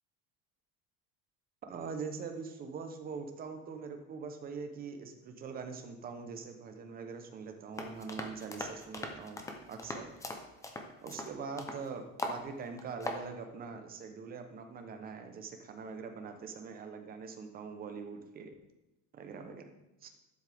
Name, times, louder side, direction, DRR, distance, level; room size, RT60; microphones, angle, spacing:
voice 1, 1.6-10.1 11.0-18.5 19.1-19.7 20.0-20.1, right 5 dB, 25° right, 6 dB, 0.8 m, -43 dB
sound 1, 7.8-11.8 12.2-12.4 12.8-13.2, left 2 dB, 10° left, 0.6 m, -40 dB
11.5 x 7.5 x 3.5 m, 0.97 s
cardioid pair, 175°, 36 cm